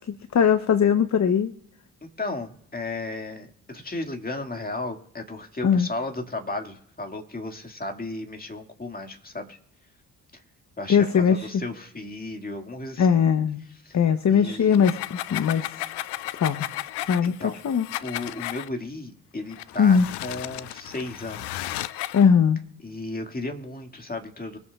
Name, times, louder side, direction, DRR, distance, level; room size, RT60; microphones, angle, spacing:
voice 1, 0.1-1.5 5.6-5.9 10.9-11.5 13.0-13.6 13.9-15.6 16.4-16.7 17.1-17.4 17.6-17.9 19.8-20.1 22.1-22.6, left 7 dB, 35° left, 11 dB, 0.9 m, -20 dB
voice 2, 2.0-9.6 10.3-10.4 10.8-13.2 13.8-14.0 14.3-15.0 17.2-21.7 21.9-22.1 22.8-24.6, left 2 dB, 20° left, 4 dB, 2.1 m, -35 dB
sound 1, 14.6-18.7 19.5-22.3, left 15 dB, 60° left, 0.6 m, -34 dB
24.0 x 8.0 x 2.4 m, 0.77 s
hypercardioid pair, 40°, 47 cm